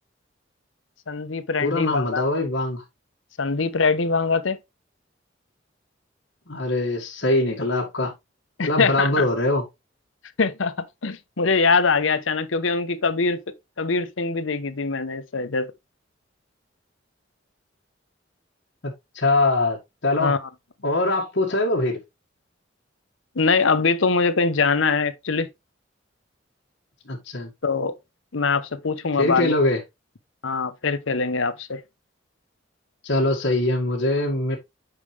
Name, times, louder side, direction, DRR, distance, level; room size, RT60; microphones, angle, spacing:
voice 1, 1.1-2.2 3.4-4.6 8.6-9.3 10.4-13.4 13.8-15.7 20.2-20.4 23.4-25.5 27.6-27.9 28.3-29.6 30.4-31.8, left 4 dB, 90° left, 0.9 m, -23 dB
voice 2, 1.6-2.8 6.5-8.1 8.6-9.6 18.8-19.8 20.0-20.4 20.8-22.0 27.1-27.5 29.2-29.8 33.0-34.6, left 2 dB, 65° left, 1.9 m, -22 dB
8.9 x 4.9 x 3.3 m
head